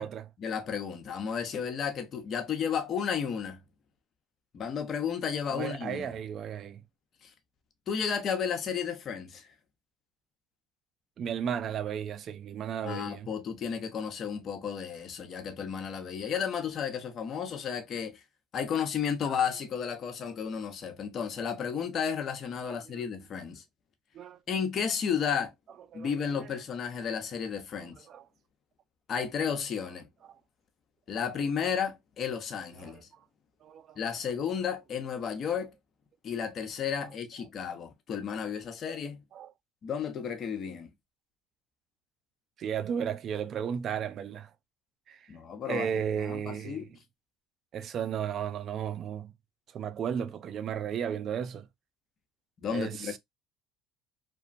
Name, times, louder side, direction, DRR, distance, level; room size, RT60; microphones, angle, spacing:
voice 1, 0.4-3.6 4.5-6.1 7.2-7.3 7.9-9.4 12.8-18.2 18.5-23.6 24.5-25.5 25.9-28.0 29.1-30.1 31.1-33.1 34.0-35.7 36.2-39.2 39.8-40.9 45.3-45.9 46.2-46.9 52.6-53.2, left 7 dB, 45° left, 0.7 m, -33 dB
voice 2, 5.5-6.8 11.2-13.3 19.2-19.4 22.6-22.8 24.1-24.4 25.9-26.1 27.8-28.2 32.8-33.0 33.6-34.0 39.3-39.5 42.6-44.5 45.1-45.3 45.7-46.9 47.7-49.3 49.7-51.7 52.7-53.2, right 8 dB, 45° right, 0.4 m, -34 dB
2.9 x 2.2 x 2.5 m
supercardioid pair, 100°, 0 cm